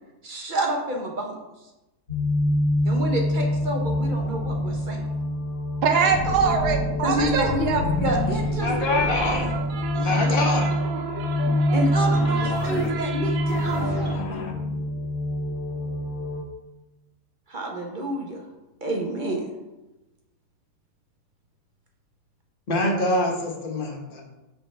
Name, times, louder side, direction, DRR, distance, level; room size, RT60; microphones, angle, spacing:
voice 1, 0.2-1.4 2.8-5.0 7.0-8.7 11.7-14.2 17.5-18.4 18.8-19.5, right 1 dB, 35° right, 1 dB, 0.9 m, -28 dB
sound 1, 2.1-16.4, left 1 dB, 65° left, 2.2 m, -26 dB
sound 2, 3.4-4.8 6.1-10.3 12.1-13.1 13.4-14.5, left 2 dB, 85° left, 1.5 m, -32 dB
voice 2, 5.8-7.8, right 5 dB, 85° right, 4 dB, 1.4 m, -22 dB
voice 3, 8.6-9.5 9.9-10.7 22.7-24.2, left 2 dB, 40° left, 1 dB, 1.1 m, -25 dB
sound 3, 8.7-14.2, right 5 dB, 65° right, 1.0 m, -33 dB
6.1 x 6.1 x 3.3 m, 1.0 s
omnidirectional pair, 1.7 m